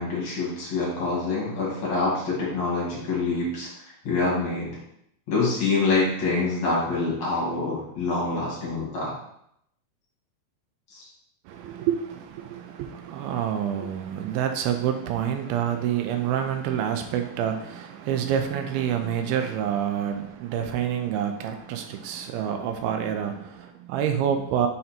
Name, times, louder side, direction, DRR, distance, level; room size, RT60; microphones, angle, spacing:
voice 1, 0.0-3.7 4.0-4.7 5.3-9.1, left 3 dB, 50° left, -6 dB, 2.7 m, -26 dB
voice 2, 11.5-24.7, right 9 dB, 80° right, 6 dB, 2.2 m, -27 dB
6.4 x 4.1 x 4.3 m, 0.75 s
omnidirectional pair, 4.9 m